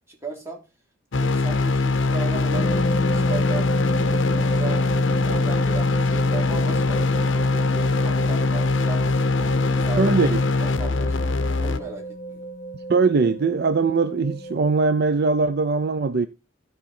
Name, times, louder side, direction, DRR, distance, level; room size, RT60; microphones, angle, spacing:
voice 1, 0.1-0.6 1.2-3.7 4.0-4.9 5.2-10.1 10.6-12.5, right 3 dB, 15° right, 3.2 m, -37 dB
sound 1, 1.1-11.8, left 3 dB, 70° left, 0.7 m, -22 dB
sound 2, 2.5-14.7, equal, 40° left, 1.6 m, -31 dB
voice 2, 10.0-10.4 12.9-16.3, right 4 dB, 55° right, 0.5 m, -21 dB
13.0 x 5.2 x 4.3 m
head